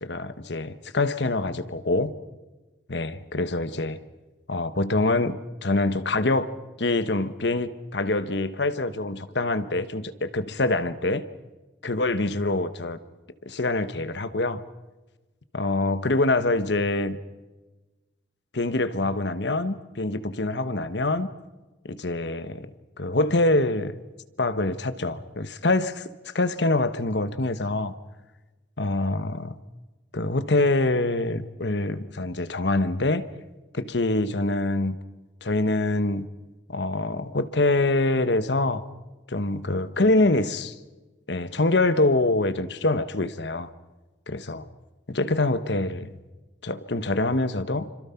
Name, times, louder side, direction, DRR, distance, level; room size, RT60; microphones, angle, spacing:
voice 1, 0.0-2.2 2.9-4.0 4.5-6.5 6.8-11.2 11.8-13.0 13.4-14.6 15.5-17.2 18.5-21.3 21.8-22.7 23.0-23.9 24.4-26.1 26.3-27.9 28.8-29.5 30.1-33.3 33.7-35.0 35.4-36.3 36.7-38.8 39.3-40.7 41.3-43.7 44.3-44.7 45.1-46.1 46.6-47.9, left 2 dB, 70° left, 12 dB, 1.3 m, -25 dB
27.0 x 26.0 x 5.8 m, 1.2 s
head